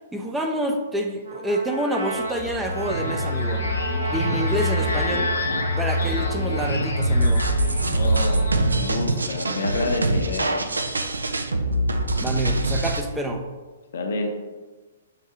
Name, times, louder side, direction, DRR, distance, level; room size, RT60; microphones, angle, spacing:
voice 1, 0.1-3.7 4.0-5.3 5.8-7.5 12.2-13.5, right 1 dB, 5° right, 3 dB, 0.4 m, -27 dB
Trumpet, 1.2-9.3, right 2 dB, 60° right, 0.8 m, -34 dB
sound 1, 2.1-8.8, left 2 dB, 90° left, 0.9 m, -27 dB
sound 2, 7.0-13.0, right 2 dB, 90° right, 0.4 m, -23 dB
voice 2, 7.9-10.6 13.9-14.3, left 3 dB, 65° left, 3 dB, 0.7 m, -29 dB
5.7 x 2.6 x 3.3 m, 1.3 s
hypercardioid pair, 125°, 0 cm